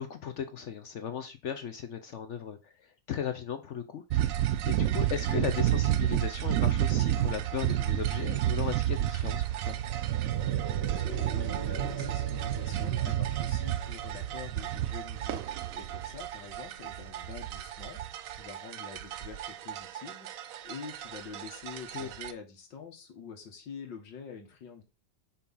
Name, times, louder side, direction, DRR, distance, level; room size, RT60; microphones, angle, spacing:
voice 1, 0.0-9.8 21.9-22.1, left 8 dB, 70° left, 0.7 m, -37 dB
sound 1, 4.1-22.3, right 12 dB, 70° right, 0.8 m, -31 dB
sound 2, 8.9-16.7 17.0-17.1, right 5 dB, 40° right, 1.0 m, -44 dB
voice 2, 10.9-24.8, left 6 dB, 85° left, 2.2 m, -46 dB
5.4 x 4.5 x 5.4 m
omnidirectional pair, 1.9 m